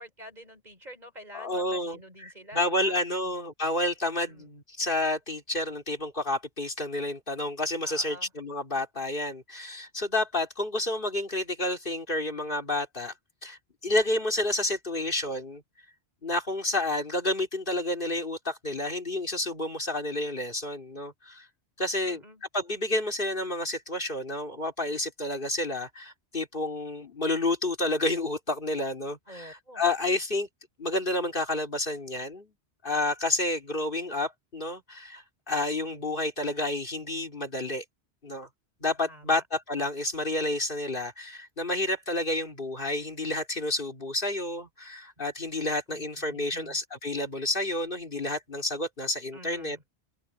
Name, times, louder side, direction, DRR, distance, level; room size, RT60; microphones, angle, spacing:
voice 1, 0.0-3.3 4.3-4.5 7.8-8.3 22.0-22.4 29.3-29.8 39.0-39.4 45.9-46.8 49.3-49.8, equal, 40° right, 5.7 m, -48 dB
voice 2, 1.3-13.1 13.4-15.6 16.2-21.5 21.8-22.2 22.5-30.5 30.8-32.5 32.8-37.8 38.2-38.5 38.8-49.8, left 2 dB, 50° left, 3.2 m, -30 dB
open air
omnidirectional pair, 1.1 m